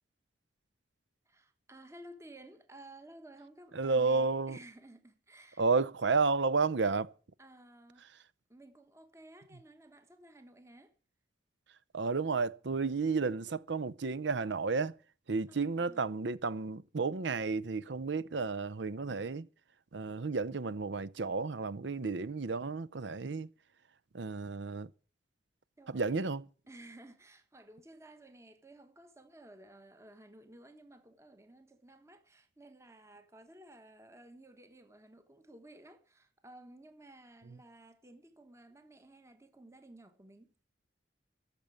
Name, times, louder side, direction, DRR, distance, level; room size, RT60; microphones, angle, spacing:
voice 1, 1.2-5.7 7.4-8.2 8.5-10.9 15.5-16.1 25.8-26.2 26.7-40.5, right 1 dB, 15° right, 1.2 m, -55 dB
voice 2, 3.7-4.6 5.6-7.1 11.9-14.9 15.3-19.5 19.9-23.5 24.1-24.9 25.9-26.4, right 4 dB, 75° right, 0.7 m, -32 dB
14.0 x 6.9 x 9.2 m
head